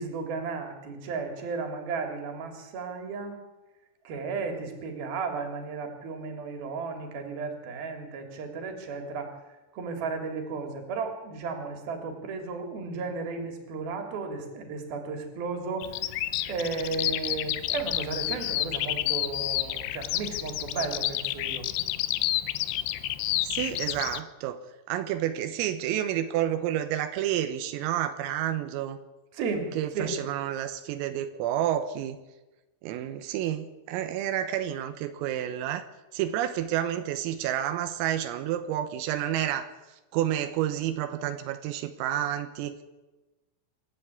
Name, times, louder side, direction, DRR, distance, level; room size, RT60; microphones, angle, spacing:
voice 1, 0.0-3.4 4.0-9.3 9.7-16.2 16.5-21.7 29.3-30.2, right 4 dB, 50° right, 5 dB, 4.4 m, -34 dB
Bird vocalization bird call bird song, 15.8-24.2, left 15 dB, 85° left, 2.4 m, -30 dB
voice 2, 23.4-29.0 29.8-32.2 32.8-35.9 36.1-39.7 40.1-42.8, right 11 dB, 90° right, 9 dB, 3.8 m, -30 dB
26.5 x 11.5 x 8.5 m, 1.1 s
omnidirectional pair, 5.9 m